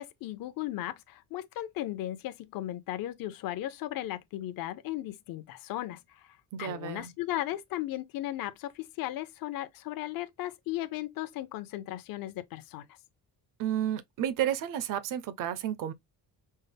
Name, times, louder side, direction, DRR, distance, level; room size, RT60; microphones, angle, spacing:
voice 1, 0.0-6.0 6.6-12.9, left 14 dB, 65° left, 0.7 m, -36 dB
voice 2, 6.5-7.1 13.6-15.9, right 10 dB, 55° right, 0.6 m, -31 dB
5.4 x 2.1 x 3.3 m
cardioid pair, 150°, 37 cm